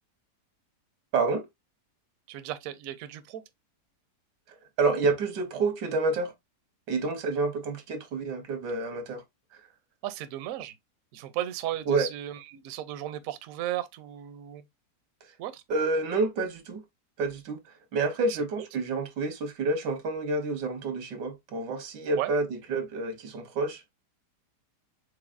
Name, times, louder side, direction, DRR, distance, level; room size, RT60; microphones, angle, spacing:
voice 1, 1.1-1.4 4.8-6.3 6.9-9.2 11.9-12.1 15.7-16.8 17.2-17.6 17.9-23.8, right 3 dB, 90° right, 1.6 m, -28 dB
voice 2, 2.3-3.4 10.0-10.7 11.1-14.6 15.4-15.6 22.2-22.3, right 12 dB, 70° right, 0.9 m, -35 dB
4.7 x 3.8 x 2.4 m
omnidirectional pair, 1.8 m